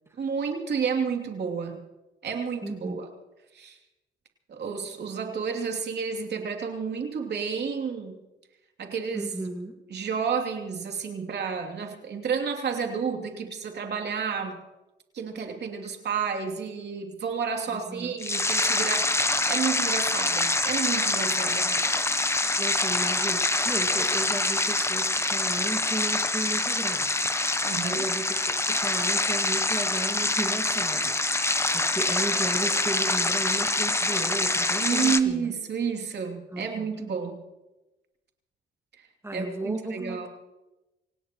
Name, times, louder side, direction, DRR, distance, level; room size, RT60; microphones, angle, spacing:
voice 1, 0.2-1.8 2.2-3.1 3.5-3.8 4.5-8.2 8.8-9.3 9.9-14.6 15.1-19.1 19.5-21.7 27.6-28.0 34.8-37.4 39.3-40.3, right 6 dB, 55° right, 3 dB, 3.0 m, -30 dB
voice 2, 2.6-3.0 9.1-9.8 17.7-18.2 21.6-21.9 22.6-35.5 36.5-37.1 39.2-40.3, right 2 dB, 15° right, 3 dB, 2.1 m, -35 dB
sound 1, 18.2-35.2, left 2 dB, 15° left, 0.9 m, -25 dB
27.0 x 17.0 x 3.1 m, 1.0 s
cardioid pair, 90°, 20 cm